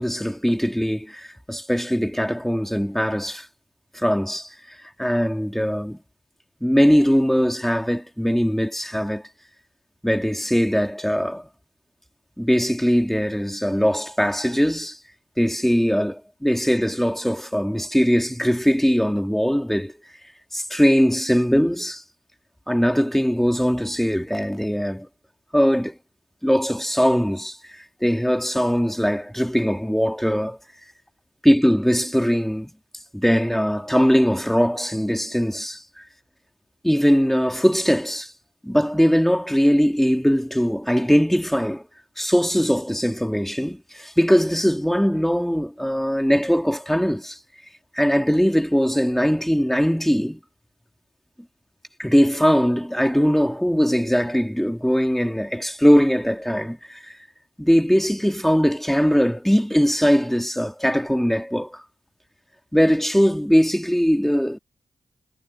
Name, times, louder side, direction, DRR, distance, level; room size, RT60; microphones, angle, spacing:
voice 1, 0.0-3.5 3.9-6.0 6.6-9.2 10.0-11.5 12.4-15.0 15.4-19.9 20.5-22.0 22.7-25.1 25.5-26.0 26.4-30.6 31.4-32.7 33.1-36.0 36.8-38.3 38.6-41.8 42.2-47.4 47.9-50.4 52.0-57.2 57.6-61.8 62.7-64.6, equal, ahead, 3.0 m, -21 dB
supercardioid pair, 40°, 10 cm